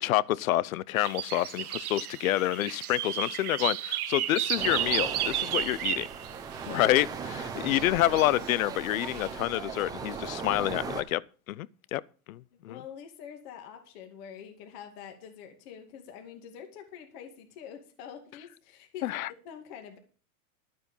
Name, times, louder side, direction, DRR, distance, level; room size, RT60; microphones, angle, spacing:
voice 1, 0.0-6.1 6.7-11.2 11.5-12.0 12.3-12.8 19.0-19.3, left 15 dB, 65° left, 0.7 m, -28 dB
sound 1, 1.0-6.9 7.7-8.5 9.0-9.3, right 12 dB, 75° right, 1.3 m, -33 dB
sound 2, 4.6-11.0, right 6 dB, 10° right, 0.8 m, -38 dB
voice 2, 12.7-19.1 19.4-20.0, left 8 dB, 40° left, 2.4 m, -46 dB
12.0 x 8.7 x 5.4 m
supercardioid pair, 155°, 44 cm